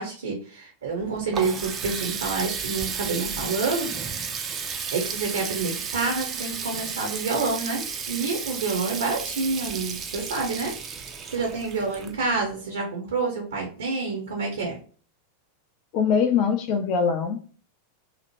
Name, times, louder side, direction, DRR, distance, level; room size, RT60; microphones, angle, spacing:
voice 1, 0.0-3.9 4.6-10.7 11.3-14.8, right 4 dB, 65° right, 1 dB, 0.6 m, -28 dB
Water tap faucet, 0.9-12.6, right 6 dB, 25° right, 0.4 m, -33 dB
voice 2, 15.9-17.4, left 6 dB, 45° left, 5 dB, 0.5 m, -22 dB
2.8 x 2.1 x 2.9 m, 0.41 s
figure-of-eight pair, 90°, 0 cm